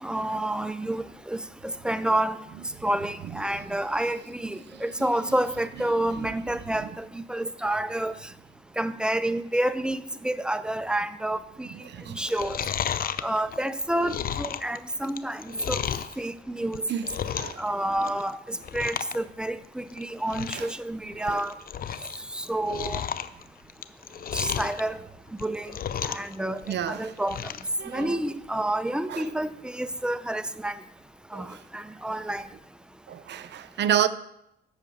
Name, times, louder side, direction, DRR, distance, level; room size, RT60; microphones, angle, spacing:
voice 1, 0.0-2.4 2.8-8.1 8.8-11.7 12.1-12.6 13.2-15.8 16.2-16.9 17.6-21.5 22.3-23.0 24.3-25.0 25.4-25.7 26.0-27.4 27.9-30.7 31.3-32.4, right 1 dB, 5° right, 0.6 m, -29 dB
voice 2, 11.9-12.2 16.9-17.6 20.5-20.7 21.2-21.4 26.7-27.1 27.8-28.2 29.1-29.2 31.3-31.6 33.1-34.1, right 10 dB, 60° right, 0.6 m, -29 dB
Chewing mastication, 12.2-16.1 16.6-17.7 17.9-18.3 18.6-19.2 19.4-19.5 20.0-20.1 20.3-20.7 21.1-22.2 22.4-24.8 25.3-26.3 26.6-27.7 28.1-28.2, left 9 dB, 45° left, 0.6 m, -32 dB
8.1 x 6.3 x 7.0 m
cardioid pair, 90°, 20 cm